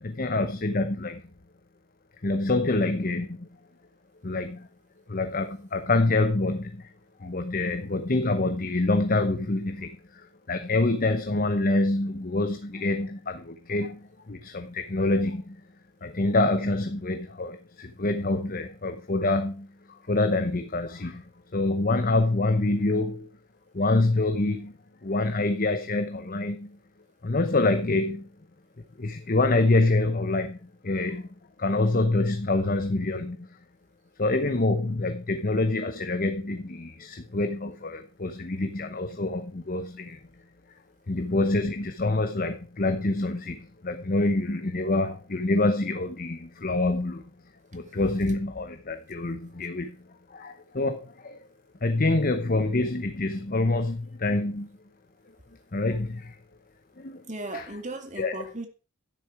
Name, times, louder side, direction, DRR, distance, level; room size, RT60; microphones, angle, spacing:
voice 1, 0.0-1.2 2.2-3.5 4.2-4.7 5.1-6.9 7.2-15.6 16.0-23.3 23.7-26.8 27.2-28.3 29.0-33.6 34.2-40.2 41.1-47.3 47.7-51.4 51.8-54.7 55.7-56.4 57.0-57.2 58.2-58.3, left 2 dB, 40° left, 7 dB, 0.9 m, -26 dB
voice 2, 57.3-58.7, right 2 dB, 35° right, 5 dB, 2.2 m, -37 dB
12.0 x 10.0 x 4.8 m, 0.34 s
head